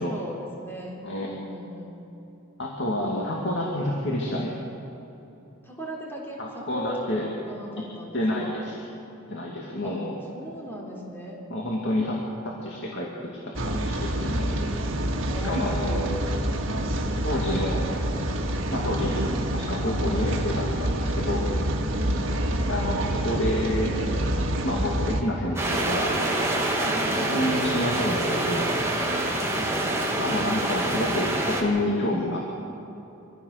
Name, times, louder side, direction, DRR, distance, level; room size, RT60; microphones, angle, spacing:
voice 1, 0.0-2.0 5.6-8.6 9.8-10.0 10.3-11.4 14.1-14.6 15.3-16.1 18.7-19.0 21.8-22.3 26.8-27.2 29.5-29.9, right 1 dB, 10° left, -3 dB, 3.7 m, -38 dB
voice 2, 2.6-4.5 6.4-7.3 7.8-7.9 8.1-8.8 9.3-10.2 11.5-12.2 12.4-14.5 15.4-16.3 17.2-17.8 18.7-19.2 19.5-21.5 22.7-24.0 24.6-26.1 27.2-28.7 30.2-32.4, left 1 dB, 55° left, -2 dB, 2.5 m, -28 dB
Rain, 13.5-25.2, right 1 dB, 60° right, 1.9 m, -27 dB
sound 1, 25.6-31.6, right 1 dB, 10° right, 2.3 m, -26 dB
25.5 x 15.5 x 6.7 m, 3.0 s
head